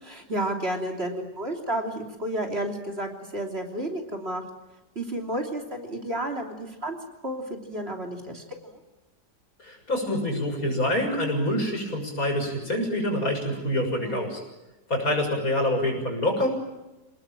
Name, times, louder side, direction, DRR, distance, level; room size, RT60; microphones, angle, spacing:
voice 1, 0.0-4.4 5.0-7.0 7.2-8.8 14.0-14.3, right 1 dB, 40° right, 2 dB, 3.5 m, -31 dB
voice 2, 9.6-14.4 14.9-16.5, left 1 dB, 60° left, 3 dB, 7.2 m, -26 dB
27.5 x 19.5 x 9.1 m, 1.0 s
omnidirectional pair, 1.7 m